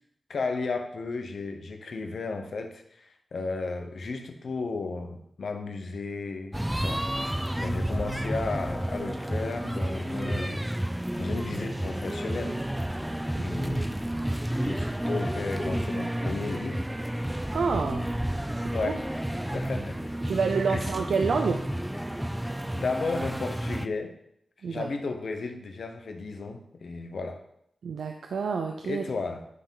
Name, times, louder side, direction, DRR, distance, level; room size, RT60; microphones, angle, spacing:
voice 1, 0.3-10.6 11.0-12.6 13.4-14.0 14.6-16.8 18.7-19.0 19.5-20.1 20.7-20.9 22.4-24.2 24.7-27.4 28.8-29.4, left 3 dB, 75° left, 5 dB, 1.0 m, -34 dB
sound 1, 6.5-23.9, right 1 dB, 5° right, 0.5 m, -31 dB
voice 2, 17.5-18.1 18.8-19.0 20.3-21.6 24.6-24.9 27.8-29.0, right 5 dB, 85° right, 4 dB, 0.5 m, -28 dB
9.8 x 3.7 x 5.6 m, 0.73 s
cardioid pair, 45°, 0 cm